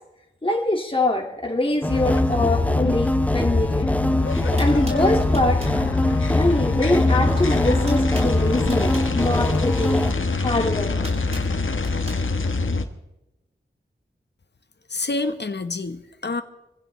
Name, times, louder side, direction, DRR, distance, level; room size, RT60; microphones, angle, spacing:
voice 1, 0.4-3.9 4.6-5.6 6.3-10.0 10.4-11.1, left 2 dB, 25° left, 1 dB, 2.3 m, -24 dB
sound 1, 1.8-10.1, left 1 dB, 5° left, 0.6 m, -24 dB
sound 2, 1.9-12.9, left 3 dB, 80° left, 1.3 m, -24 dB
sound 3, 4.1-4.2 4.6-5.8 7.0-7.3 7.6-9.1 10.3-12.2, right 1 dB, 30° right, 7.0 m, -40 dB
voice 2, 14.9-16.4, left 3 dB, 60° left, 8 dB, 1.3 m, -27 dB
25.0 x 16.0 x 3.3 m, 0.94 s
wide cardioid pair, 55°, 20 cm